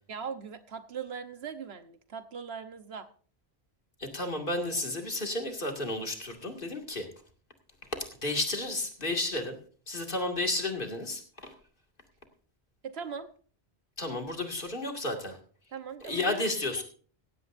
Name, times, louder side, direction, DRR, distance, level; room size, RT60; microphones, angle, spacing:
voice 1, 0.1-3.1 12.8-13.3 15.7-16.4 16.8-16.9, right 6 dB, 75° right, 9 dB, 1.3 m, -40 dB
voice 2, 4.0-7.1 7.8-9.6 9.9-11.5 14.0-15.4 16.0-16.8, left 2 dB, 55° left, 3 dB, 2.4 m, -32 dB
16.5 x 15.5 x 2.6 m, 0.43 s
omnidirectional pair, 1.1 m